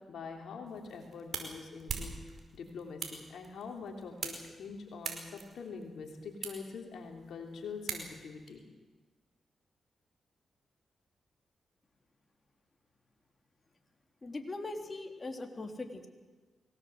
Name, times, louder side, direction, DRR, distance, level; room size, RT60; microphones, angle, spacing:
voice 1, 0.1-2.2 2.5-8.7, left 5 dB, 80° left, 3 dB, 3.2 m, -44 dB
sound 1, 0.7-8.5, right 5 dB, 65° right, 5.0 m, -44 dB
voice 2, 14.2-16.1, left 2 dB, 35° left, 4 dB, 3.5 m, -40 dB
24.0 x 18.5 x 8.0 m, 1.3 s
supercardioid pair, 50°, 0 cm